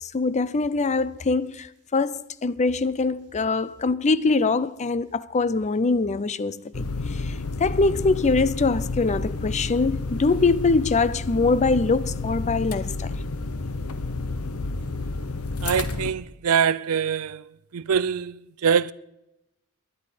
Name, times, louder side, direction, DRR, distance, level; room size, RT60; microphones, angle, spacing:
voice 1, 0.0-13.1, left 3 dB, 30° left, 0.5 m, -23 dB
sound 1, 6.7-16.1, left 3 dB, 70° left, 1.0 m, -30 dB
voice 2, 15.6-17.4 17.7-18.9, right 7 dB, 75° right, 0.5 m, -24 dB
20.0 x 11.0 x 5.1 m
head